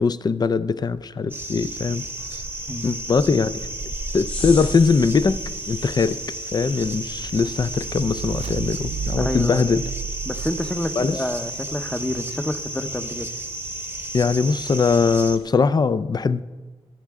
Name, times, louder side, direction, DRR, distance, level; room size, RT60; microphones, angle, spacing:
voice 1, 0.0-2.0 2.3-2.4 2.8-3.6 4.1-5.4 5.7-6.2 6.5-9.8 11.0-11.2 14.1-16.4, left 5 dB, 40° left, 15 dB, 0.4 m, -21 dB
sound 1, 1.3-15.4, right 1 dB, 20° right, 0.9 m, -32 dB
voice 2, 2.7-3.0 9.1-9.7 10.2-13.3, left 1 dB, 10° left, 8 dB, 0.8 m, -28 dB
sound 2, 4.3-15.0 15.3-15.6, left 3 dB, 70° left, 5.7 m, -44 dB
sound 3, 7.2-11.4, right 6 dB, 80° right, 0.4 m, -33 dB
25.0 x 9.5 x 3.6 m, 1.3 s
wide cardioid pair, 155°, 11 cm